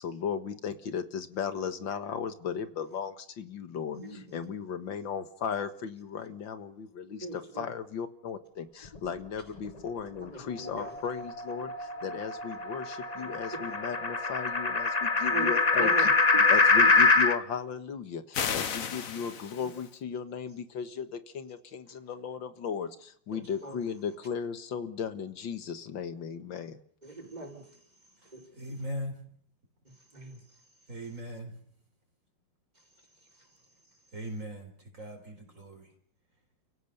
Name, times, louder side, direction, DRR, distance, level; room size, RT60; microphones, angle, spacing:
voice 1, 0.0-16.1 16.5-26.8, left 7 dB, 85° left, 11 dB, 2.2 m, -36 dB
voice 2, 3.9-4.5 7.2-7.7 10.2-10.9 15.3-15.5 15.8-16.1 16.8-16.9 19.6-19.7 23.3-23.7 27.0-27.7 28.2-28.4 29.8-30.4 33.3-33.5, right 2 dB, 20° right, 1 dB, 4.9 m, -40 dB
sound 1, 10.6-17.4, left 3 dB, 25° left, 0.9 m, -25 dB
sound 2, 18.3-19.9, left 7 dB, 50° left, 1.5 m, -34 dB
voice 3, 28.5-29.2 30.9-31.6 34.1-35.9, equal, 40° right, 3 dB, 4.7 m, -39 dB
29.5 x 16.5 x 6.9 m, 0.64 s
omnidirectional pair, 2.0 m